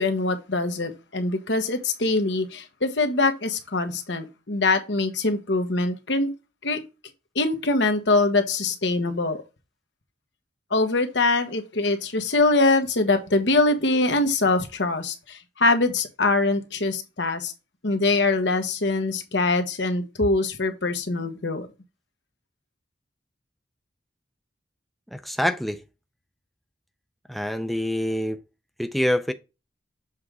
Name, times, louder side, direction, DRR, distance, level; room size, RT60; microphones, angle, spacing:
voice 1, 0.0-6.3 6.6-6.8 7.3-9.4 10.7-17.5 17.8-21.7, left 2 dB, 80° left, 1.2 m, -23 dB
voice 2, 25.1-25.8 27.3-28.4 28.8-29.3, equal, ahead, 0.4 m, -25 dB
7.4 x 3.7 x 4.6 m
head